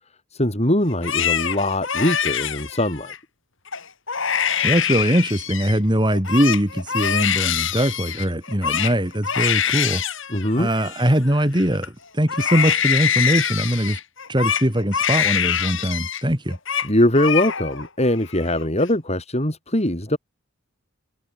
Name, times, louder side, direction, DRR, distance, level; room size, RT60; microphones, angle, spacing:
voice 1, 0.3-3.1 10.3-10.7 16.8-20.2, left 1 dB, 30° left, 7.0 m, -21 dB
Crying sobbing, 0.9-3.2 3.7-5.8 6.1-11.9 12.3-16.2 16.5-16.9 17.1-17.9 18.2-18.8, left 8 dB, 65° left, 6.4 m, -24 dB
voice 2, 4.6-10.0 10.6-14.0 14.3-16.6, equal, 20° right, 4.0 m, -21 dB
head